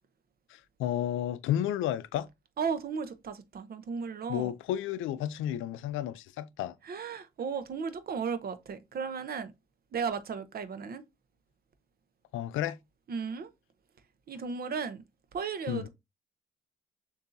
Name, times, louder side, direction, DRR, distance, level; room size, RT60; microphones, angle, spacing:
voice 1, 0.5-2.3 4.3-6.7 12.3-12.8 15.7-15.8, left 11 dB, 85° left, 0.4 m, -32 dB
voice 2, 2.6-4.5 6.8-9.5 9.9-11.1 13.1-13.5 14.3-15.0 15.3-15.9, right 6 dB, 50° right, 0.8 m, -35 dB
6.7 x 2.7 x 2.6 m
cardioid pair, 90°, 20 cm